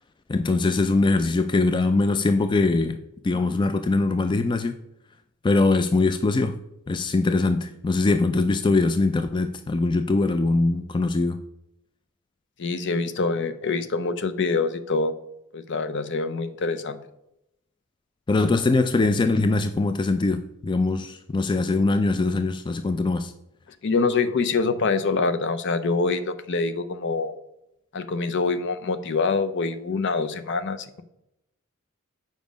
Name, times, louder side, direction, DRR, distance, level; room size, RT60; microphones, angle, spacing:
voice 1, 0.3-4.8 5.4-6.6 6.9-11.4 18.3-23.3, left 3 dB, 20° left, 9 dB, 0.3 m, -22 dB
voice 2, 12.6-15.1 15.5-17.0 23.8-27.3 27.9-31.0, left 4 dB, 60° left, 11 dB, 0.6 m, -25 dB
7.3 x 5.1 x 5.1 m, 0.83 s
head